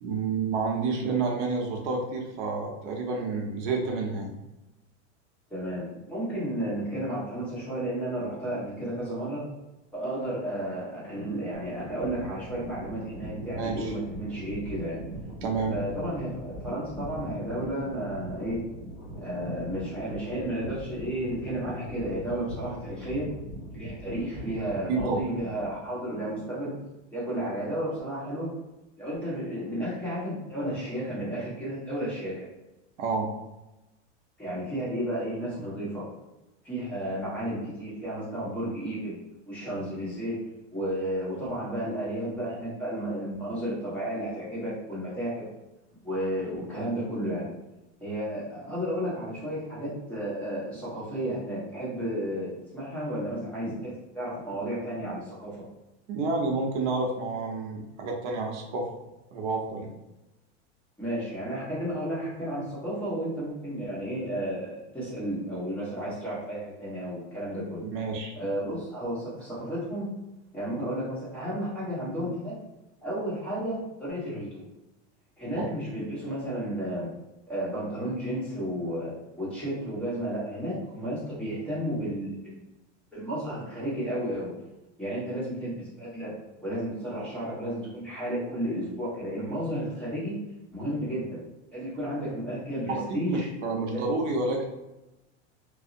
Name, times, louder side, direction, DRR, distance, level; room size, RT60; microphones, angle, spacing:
voice 1, 0.0-4.3 13.6-13.9 15.4-15.7 24.9-25.2 33.0-33.3 56.1-58.9 59.3-59.9 67.9-68.3 75.6-75.7 93.1-94.7, right 3 dB, 80° right, 0 dB, 0.7 m, -29 dB
voice 2, 5.5-9.4 9.9-15.0 15.7-18.6 19.2-23.3 23.7-26.8 27.1-28.5 29.0-32.5 34.4-36.0 36.6-39.2 39.4-40.4 40.7-45.4 46.0-47.5 48.0-55.6 61.0-67.8 68.4-70.1 70.5-72.5 73.0-74.6 75.4-77.1 77.5-82.6 83.1-84.5 85.0-90.3 90.7-91.4 91.7-93.5 93.9-94.0, right 1 dB, 5° left, -9 dB, 1.0 m, -32 dB
sound 1, 11.5-25.8, right 1 dB, 40° left, 1.4 m, -40 dB
2.6 x 2.0 x 2.5 m, 0.97 s
supercardioid pair, 140°, 35 cm